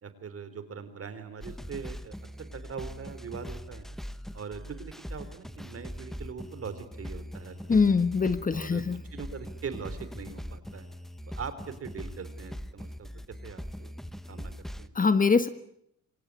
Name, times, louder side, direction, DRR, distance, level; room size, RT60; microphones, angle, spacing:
voice 1, 0.0-2.2 2.5-3.9 4.3-8.0 8.5-8.8 9.1-10.9 11.3-13.9 14.3-14.5 14.8-15.0, right 6 dB, 50° right, 12 dB, 3.7 m, -41 dB
sound 1, 1.4-14.9, equal, ahead, 1.2 m, -41 dB
voice 2, 7.7-9.0 14.9-15.5, left 4 dB, 25° left, 12 dB, 1.4 m, -23 dB
25.0 x 17.5 x 9.6 m, 0.74 s
cardioid pair, 90°, 30 cm